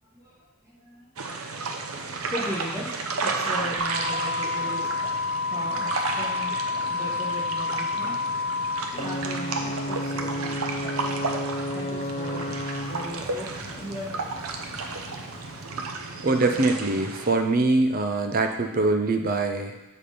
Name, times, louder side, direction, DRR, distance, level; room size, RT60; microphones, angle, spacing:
voice 1, 0.1-1.1 1.8-4.9 5.5-6.5 6.9-8.1 9.0-11.3 11.7-14.3, equal, 15° right, -8 dB, 2.1 m, -38 dB
sound 1, 1.2-17.3, right 3 dB, 90° right, 0.7 m, -33 dB
sound 2, 3.8-8.8, left 4 dB, 60° right, 2.0 m, -29 dB
Ocean / Boat Water vehicle / Alarm, 8.9-16.5, left 1 dB, 30° left, 0.4 m, -34 dB
voice 2, 16.2-19.7, right 2 dB, 40° right, 5 dB, 0.6 m, -23 dB
7.0 x 4.3 x 5.0 m, 1.1 s
head